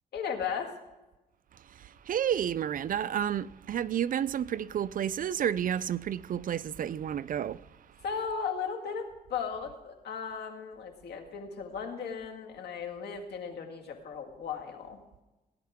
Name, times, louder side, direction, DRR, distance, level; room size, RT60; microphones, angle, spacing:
voice 1, 0.1-0.8 8.0-15.0, left 6 dB, 80° left, 1.9 m, -36 dB
voice 2, 1.8-7.6, right 9 dB, 55° right, 0.4 m, -31 dB
18.0 x 10.5 x 3.6 m
cardioid pair, 100°, 17 cm